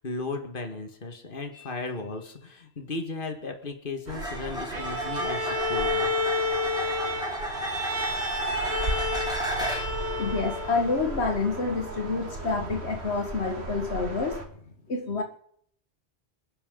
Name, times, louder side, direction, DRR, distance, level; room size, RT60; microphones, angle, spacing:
voice 1, 0.0-6.1, left 3 dB, 55° left, 5 dB, 2.0 m, -35 dB
sound 1, 1.5-1.7 4.1-10.0 13.7-14.0, equal, 5° right, 2.9 m, -34 dB
sound 2, 4.1-14.5, right 2 dB, 85° right, 2.3 m, -37 dB
Bowed string instrument, 4.7-11.0, left 2 dB, 70° right, 2.4 m, -30 dB
voice 2, 10.2-14.4 14.9-15.2, left 4 dB, 85° left, 3 dB, 2.0 m, -28 dB
27.5 x 10.5 x 3.9 m, 0.65 s
omnidirectional pair, 1.1 m